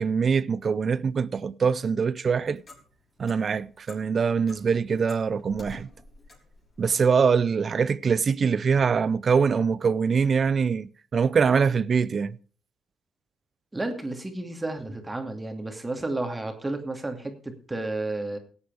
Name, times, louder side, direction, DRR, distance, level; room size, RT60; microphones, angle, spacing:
voice 1, 0.0-2.6 3.2-5.9 6.8-12.4, right 6 dB, 45° right, 0.5 m, -23 dB
Clock, 2.1-7.1, left 2 dB, 35° left, 5.6 m, -50 dB
voice 2, 13.7-18.4, right 2 dB, 15° right, 2.5 m, -32 dB
17.5 x 8.4 x 4.8 m
cardioid pair, 90°, 0 cm